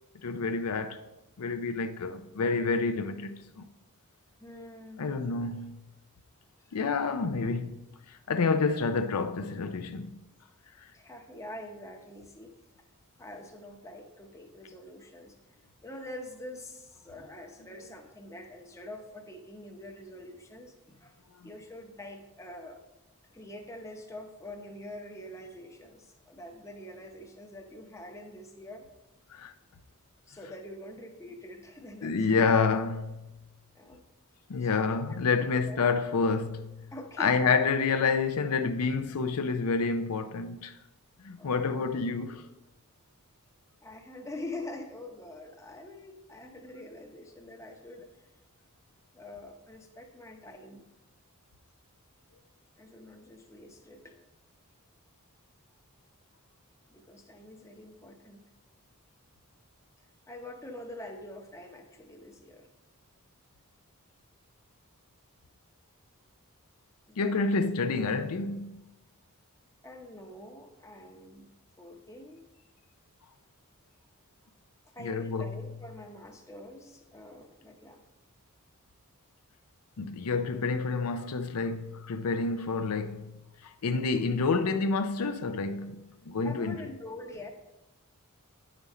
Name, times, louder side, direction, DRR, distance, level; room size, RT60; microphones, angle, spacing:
voice 1, 0.2-1.0 1.4-3.7 5.0-5.8 6.7-10.2 10.8-10.9 21.4-21.5 29.3-29.5 32.0-33.3 34.5-36.8 37.2-40.7 41.2-42.5 67.2-68.8 75.0-75.6 80.0-83.3 83.6-86.8, left 4 dB, 85° left, 0.5 m, -29 dB
voice 2, 4.4-5.0 6.6-6.8 10.9-12.5 13.1-15.4 15.8-22.8 23.3-28.9 30.3-32.3 33.7-34.0 34.6-35.8 36.9-37.5 41.4-41.9 42.3-42.5 43.8-48.3 49.1-50.9 52.8-54.2 56.9-58.4 60.3-62.7 67.1-67.4 69.8-71.5 71.8-72.4 74.9-78.0 86.4-87.5, left 1 dB, 15° left, 0.7 m, -45 dB
9.6 x 5.2 x 4.1 m
head